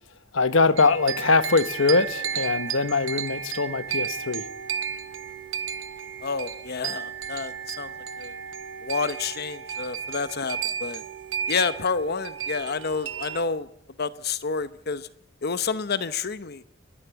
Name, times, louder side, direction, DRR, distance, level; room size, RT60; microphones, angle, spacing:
voice 1, 0.3-4.5, left 3 dB, 75° left, 1.1 m, -22 dB
sound 1, 0.8-13.4, right 8 dB, 75° right, 1.1 m, -33 dB
voice 2, 6.2-7.9 8.2-8.4 8.8-11.0 11.5-13.7 14.0-15.1 15.4-16.6, left 5 dB, 55° left, 0.9 m, -29 dB
30.0 x 10.5 x 9.3 m
head